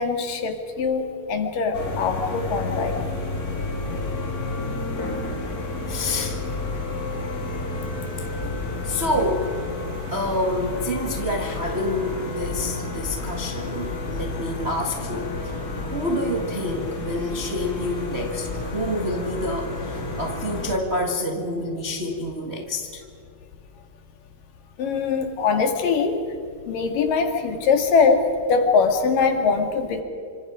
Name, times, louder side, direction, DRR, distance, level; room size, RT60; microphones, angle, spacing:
voice 1, 0.0-2.9 24.8-26.2 26.7-28.2 28.5-30.0, left 5 dB, 60° left, 5 dB, 3.6 m, -22 dB
sound 1, 1.7-20.8, left 3 dB, 25° left, 2.4 m, -30 dB
voice 2, 5.9-6.4 8.2-8.6 8.8-9.5 10.1-15.5 15.8-23.0, left 1 dB, 55° right, 1 dB, 0.7 m, -28 dB
26.5 x 26.0 x 5.1 m, 2.5 s
omnidirectional pair, 4.6 m